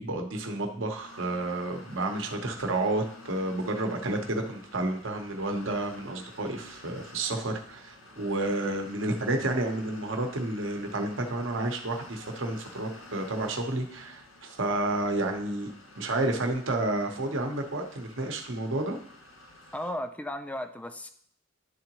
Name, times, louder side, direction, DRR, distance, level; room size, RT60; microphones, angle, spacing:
voice 1, 0.0-15.7 16.0-19.0, right 2 dB, 70° right, 4 dB, 0.9 m, -30 dB
sound 1, 0.9-19.9, left 2 dB, 85° left, 1.8 m, -51 dB
voice 2, 19.7-21.1, left 1 dB, 5° left, 8 dB, 0.4 m, -35 dB
11.5 x 3.8 x 2.9 m, 0.64 s
head